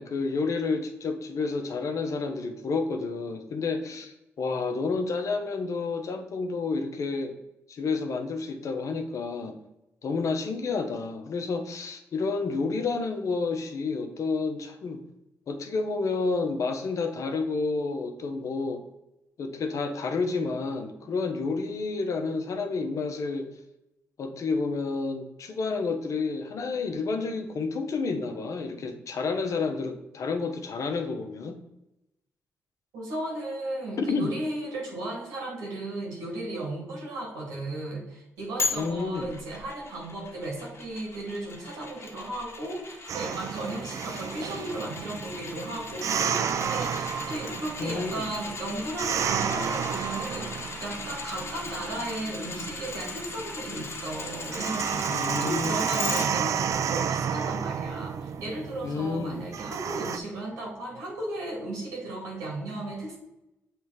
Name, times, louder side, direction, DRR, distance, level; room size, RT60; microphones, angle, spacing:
voice 1, 0.0-7.3 7.7-9.6 10.0-15.0 15.5-18.8 19.4-23.5 24.2-31.6 34.0-34.3 38.7-39.3 47.8-48.3 55.1-55.8 58.8-59.4, left 4 dB, 65° left, 6 dB, 0.9 m, -30 dB
voice 2, 32.9-63.2, right 2 dB, 90° right, -2 dB, 2.1 m, -35 dB
sound 1, 38.6-56.3 56.7-56.8, left 3 dB, 45° left, 1.5 m, -38 dB
sound 2, 43.1-60.2, right 7 dB, 65° right, 0.4 m, -32 dB
7.0 x 3.4 x 4.7 m, 0.91 s
supercardioid pair, 50°, 6 cm